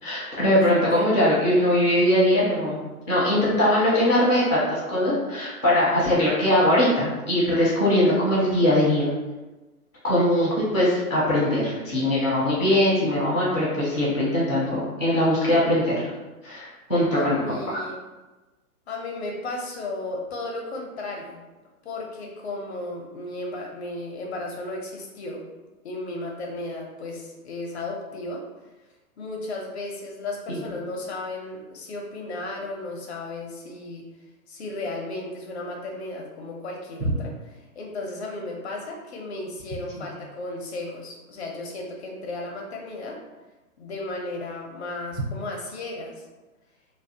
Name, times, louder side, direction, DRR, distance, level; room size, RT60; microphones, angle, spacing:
voice 1, 0.0-2.8 3.1-9.1 10.0-16.1 16.4-17.4 17.7-17.8 30.5-30.6, left 1 dB, 5° right, -8 dB, 0.4 m, -21 dB
voice 2, 0.6-1.1 17.1-18.0 18.9-21.4 21.8-25.4 25.8-28.4 29.2-34.0 34.5-37.3 37.6-43.2 43.8-46.2, left 2 dB, 45° left, 0 dB, 0.5 m, -34 dB
2.5 x 2.0 x 2.6 m, 1.1 s
hypercardioid pair, 125°, 46 cm